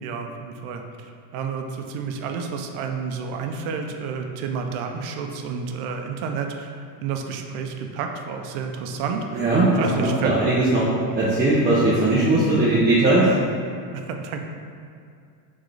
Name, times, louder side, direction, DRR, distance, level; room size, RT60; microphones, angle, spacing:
voice 1, 0.0-9.4 9.8-10.4 13.9-14.4, right 6 dB, 75° right, 4 dB, 0.6 m, -30 dB
voice 2, 9.3-10.8 11.2-13.3, right 2 dB, 20° right, -8 dB, 0.6 m, -19 dB
3.8 x 3.7 x 3.3 m, 2.3 s
cardioid pair, 125°, 49 cm